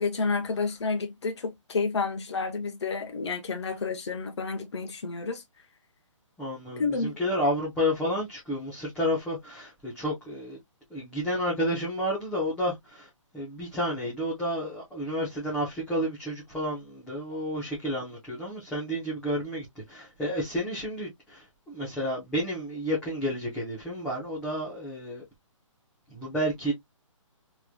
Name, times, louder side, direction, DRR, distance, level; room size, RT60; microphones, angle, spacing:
voice 1, 0.0-5.4 6.8-7.1, left 4 dB, 55° left, 0.9 m, -30 dB
voice 2, 6.4-10.6 10.9-13.1 13.3-25.2 26.1-26.7, equal, 5° left, 0.8 m, -31 dB
3.7 x 3.1 x 2.3 m
hypercardioid pair, 175°, 17 cm